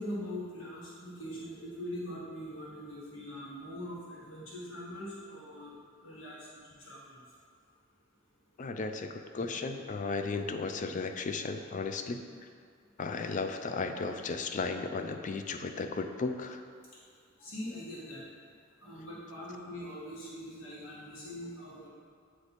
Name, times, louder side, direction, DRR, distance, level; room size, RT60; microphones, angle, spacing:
voice 1, 0.0-5.7 6.0-6.3 6.7-7.0 9.4-9.5 17.4-18.2 18.8-21.9, equal, 80° left, -7 dB, 1.5 m, -42 dB
voice 2, 8.6-12.2 13.0-16.6, left 4 dB, 40° left, 7 dB, 0.4 m, -35 dB
8.6 x 3.2 x 4.1 m, 2.1 s
head